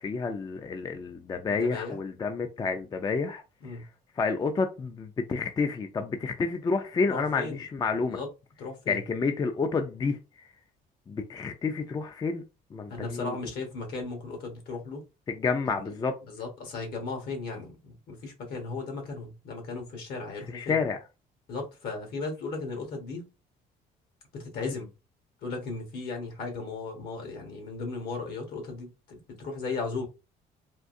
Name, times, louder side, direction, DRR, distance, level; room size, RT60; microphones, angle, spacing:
voice 1, 0.0-3.4 3.7-3.8 4.2-8.2 8.9-10.2 11.1-12.4 12.7-13.4 15.3-16.1 20.5-21.0 24.6-24.7, left 4 dB, 25° left, 0.4 m, -29 dB
voice 2, 1.5-2.0 3.6-3.9 7.1-7.6 8.1-8.3 8.6-9.0 12.9-15.0 15.7-15.9 16.3-20.8 21.5-23.2 24.3-24.9 25.4-30.1, left 3 dB, 70° left, 1.3 m, -36 dB
3.6 x 2.5 x 2.6 m
cardioid pair, 110°, 17 cm